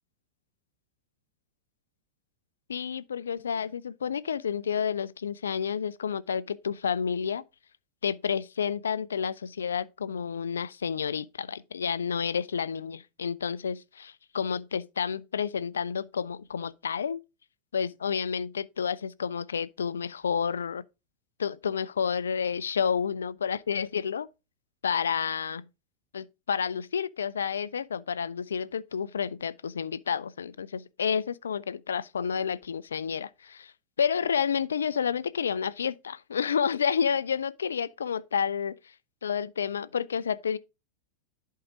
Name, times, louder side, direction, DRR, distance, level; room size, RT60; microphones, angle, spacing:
voice 1, 2.7-7.4 8.0-17.2 17.7-20.8 21.4-24.3 24.8-25.6 26.1-33.7 34.0-38.8 39.2-40.6, left 7 dB, 70° left, 0.3 m, -30 dB
11.0 x 4.7 x 3.7 m
figure-of-eight pair, 90°, 0 cm